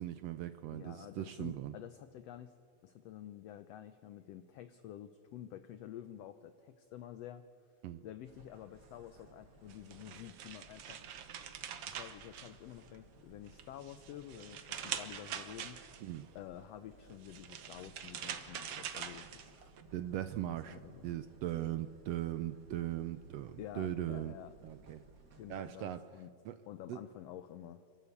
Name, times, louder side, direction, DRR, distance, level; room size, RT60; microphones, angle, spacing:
voice 1, 0.0-1.7 7.8-8.0 16.0-16.3 19.9-24.4 24.6-25.0 25.5-26.1 26.4-26.6 26.9-27.0, right 12 dB, 80° right, 11 dB, 1.5 m, -39 dB
voice 2, 0.7-2.5 2.8-7.4 8.0-11.0 11.9-15.8 16.3-19.7 20.5-21.0 23.6-24.5 25.4-26.3 26.7-27.8, left 11 dB, 75° left, 10 dB, 1.6 m, -49 dB
sound 1, 8.2-25.6, right 2 dB, 35° right, 1.6 m, -61 dB
sound 2, 9.7-13.1 13.5-16.2 17.1-19.8, right 9 dB, 60° right, 1.8 m, -44 dB
28.5 x 13.0 x 8.5 m, 2.2 s
omnidirectional pair, 3.4 m